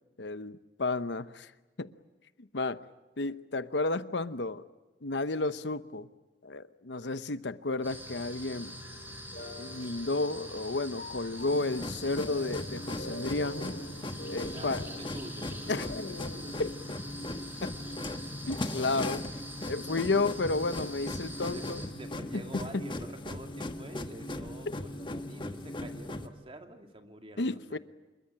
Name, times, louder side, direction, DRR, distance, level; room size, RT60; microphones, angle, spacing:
voice 1, 0.2-1.5 1.8-1.9 2.4-2.8 3.2-4.7 5.0-6.1 6.4-8.8 9.6-13.8 14.3-15.0 15.7-16.8 17.6-17.8 18.4-19.3 19.7-21.8 22.3-22.9 27.4-27.8, left 3 dB, 70° left, 0.9 m, -32 dB
sound 1, 7.8-21.9, equal, 10° right, 5.4 m, -45 dB
sound 2, 8.6-14.9, left 1 dB, 55° left, 3.2 m, -47 dB
sound 3, 11.4-26.3, left 1 dB, 25° left, 1.3 m, -39 dB
voice 2, 14.5-16.0 16.3-16.6 21.5-27.8, right 1 dB, 30° right, 2.4 m, -47 dB
27.0 x 22.5 x 8.7 m
head